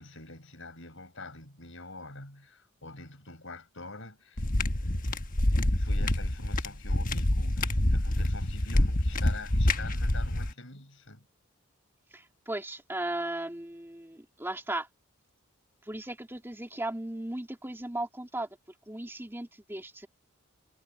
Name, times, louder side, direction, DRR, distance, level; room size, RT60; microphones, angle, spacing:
voice 1, 0.0-11.2, left 3 dB, 60° left, 6.1 m, -46 dB
sound 1, 4.4-10.5, left 1 dB, 40° left, 1.3 m, -27 dB
voice 2, 12.1-14.9 15.8-18.5 18.9-20.1, right 1 dB, 10° right, 2.4 m, -36 dB
head